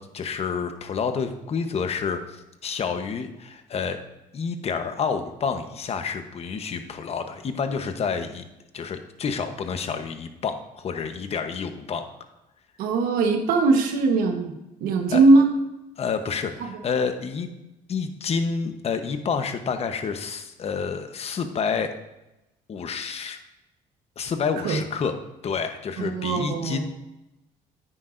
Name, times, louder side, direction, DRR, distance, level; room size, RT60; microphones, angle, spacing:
voice 1, 0.0-4.0 4.3-8.4 8.7-12.0 15.1-15.2 16.0-17.5 17.9-21.9 22.7-23.4 24.2-25.1 25.4-26.8, left 5 dB, 45° left, 7 dB, 1.1 m, -29 dB
voice 2, 12.8-14.5 14.8-15.5 24.6-24.8 26.0-26.8, right 3 dB, 85° right, 4 dB, 1.3 m, -20 dB
10.0 x 9.2 x 2.6 m, 0.96 s
cardioid pair, 90°, 15 cm